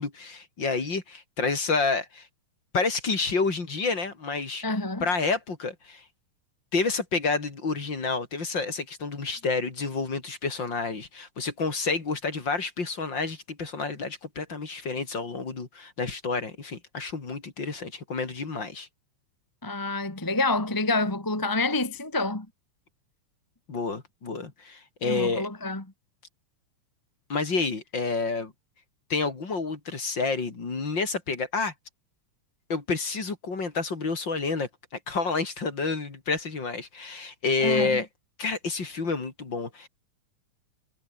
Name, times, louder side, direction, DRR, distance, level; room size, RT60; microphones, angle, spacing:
voice 1, 0.0-2.3 2.7-4.6 5.0-6.0 6.7-18.9 23.7-25.5 27.3-28.5 29.1-31.7 32.7-34.7 35.1-38.1 38.4-39.9, left 4 dB, 35° left, 3.7 m, -29 dB
voice 2, 4.6-5.0 19.6-22.5 25.0-25.8 37.6-38.0, left 2 dB, 10° left, 1.4 m, -27 dB
omnidirectional pair, 3.6 m